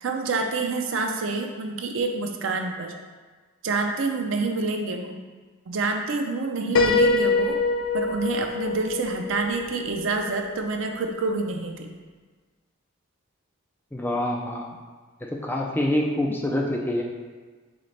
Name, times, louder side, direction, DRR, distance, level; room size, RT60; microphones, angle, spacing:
voice 1, 0.0-2.9 3.6-5.2 5.7-7.6 7.9-11.9, right 3 dB, 65° right, 3 dB, 0.5 m, -27 dB
Piano, 6.7-10.5, left 3 dB, 75° left, 0.4 m, -24 dB
voice 2, 13.9-14.7 15.2-17.0, left 1 dB, 10° left, -1 dB, 0.4 m, -26 dB
3.9 x 3.9 x 3.3 m, 1.4 s
head